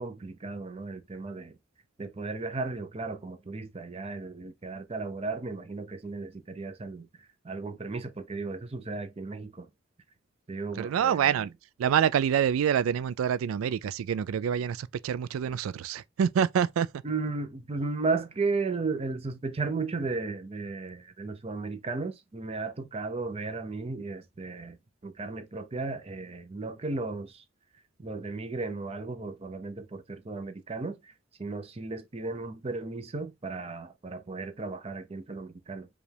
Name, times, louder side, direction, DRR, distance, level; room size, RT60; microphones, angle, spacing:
voice 1, 0.0-1.5 2.0-7.1 7.4-9.7 10.5-11.5 17.0-24.8 25.0-27.4 28.0-31.1 31.4-35.9, right 3 dB, 30° right, 0.5 m, -35 dB
voice 2, 10.8-11.5 11.8-16.9, right 8 dB, 80° right, 0.3 m, -26 dB
4.9 x 2.3 x 3.3 m
head